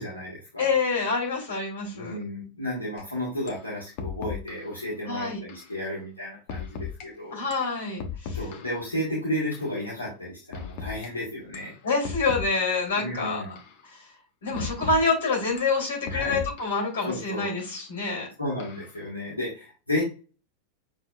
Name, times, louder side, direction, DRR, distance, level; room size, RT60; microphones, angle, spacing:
voice 1, 0.0-0.7 1.9-7.4 8.3-11.7 12.9-13.6 16.0-16.4 17.0-17.6 18.4-20.0, left 1 dB, 80° left, -6 dB, 1.7 m, -33 dB
voice 2, 0.6-2.2 5.1-5.4 7.3-8.4 11.8-13.5 13.9-14.0 14.4-18.3, left 4 dB, 60° left, 0 dB, 2.6 m, -27 dB
sound 1, 3.0-3.1 3.5-3.7 4.0-4.7 5.5-5.7 6.5-7.1 7.5-8.9 9.5-9.7 10.5-11.1 11.5-11.7 12.0-12.9 13.6-13.8 14.6-15.1 15.6-16.9 17.6-17.8 18.6-19.0, left 6 dB, 45° left, 1.0 m, -37 dB
6.7 x 3.4 x 2.4 m, 0.34 s
figure-of-eight pair, 90°, 0 cm